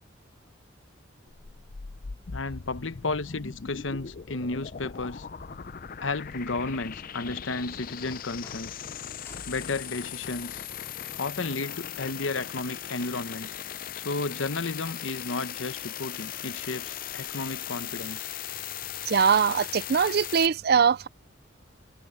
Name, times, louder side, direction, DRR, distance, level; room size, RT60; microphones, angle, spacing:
sound 1, 1.3-20.5, left 9 dB, 45° left, 0.5 m, -39 dB
voice 1, 2.3-5.3 6.0-8.8 9.5-10.7 11.2-13.6 14.0-18.3, left 3 dB, 85° left, 1.0 m, -33 dB
sound 2, 3.2-4.3 5.4-6.5 8.3-11.9 12.7-12.8 16.1-17.4 18.7-18.8 19.1-20.3, left 1 dB, 15° left, 4.8 m, -56 dB
voice 2, 19.1-21.1, right 6 dB, 55° right, 0.4 m, -22 dB
head